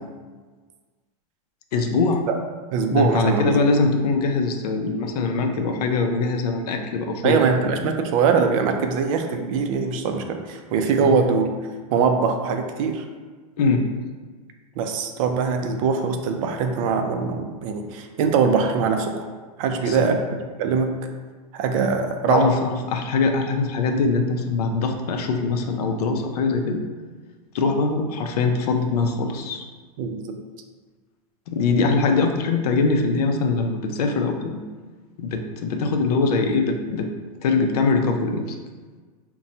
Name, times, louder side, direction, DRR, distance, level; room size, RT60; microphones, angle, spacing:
voice 1, 1.7-2.3 2.9-7.7 11.0-11.2 13.6-14.0 19.8-20.2 22.3-26.8 27.5-29.7 31.5-34.6 35.2-37.1 37.4-38.6, left 4 dB, 85° left, 4 dB, 0.5 m, -22 dB
voice 2, 2.7-3.6 7.2-11.5 11.9-13.0 14.8-19.3 19.6-21.0 21.5-22.5 30.0-30.4, right 5 dB, 60° right, 5 dB, 0.4 m, -22 dB
4.0 x 2.2 x 2.7 m, 1.4 s
supercardioid pair, 130°, 19 cm